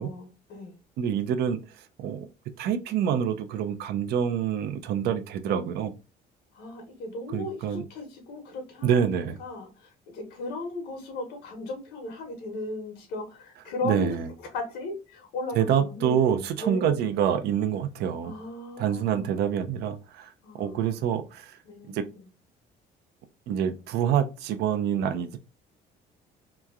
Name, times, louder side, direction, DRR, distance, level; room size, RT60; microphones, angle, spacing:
voice 1, 0.0-0.8 6.5-17.1 18.2-19.4 20.4-21.2 21.6-22.3, left 2 dB, 90° left, 1.1 m, -37 dB
voice 2, 1.0-1.6 2.0-2.3 2.6-5.9 7.3-7.8 8.8-9.4 13.8-14.3 15.6-18.3 18.8-20.3 20.6-21.6 21.9-22.0 23.5-25.4, right 8 dB, 75° right, 0.5 m, -26 dB
3.0 x 2.3 x 2.4 m
cardioid pair, 110°, 17 cm